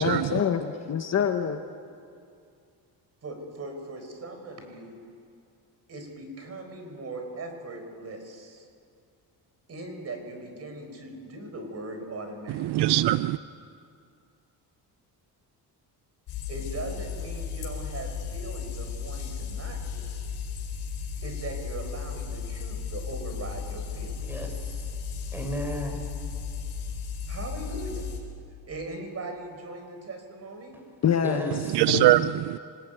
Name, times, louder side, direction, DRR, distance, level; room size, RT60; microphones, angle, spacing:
voice 1, 0.0-1.6 31.0-31.5 31.9-32.1, left 7 dB, 40° left, 7 dB, 1.1 m, -25 dB
voice 2, 3.2-5.0 5.9-8.7 9.7-13.0 16.5-20.1 21.2-24.5 27.3-28.1 28.6-30.7, right 2 dB, 35° right, 5 dB, 4.6 m, -39 dB
voice 3, 12.7-13.4 31.7-32.6, right 15 dB, 75° right, 15 dB, 0.6 m, -22 dB
sound 1, 16.3-28.2, left 6 dB, 90° left, 4.9 m, -35 dB
voice 4, 24.3-24.9 25.3-26.1 31.2-31.9, equal, 5° right, 3 dB, 4.3 m, -34 dB
25.5 x 20.5 x 9.2 m, 2.4 s
cardioid pair, 160°, 41 cm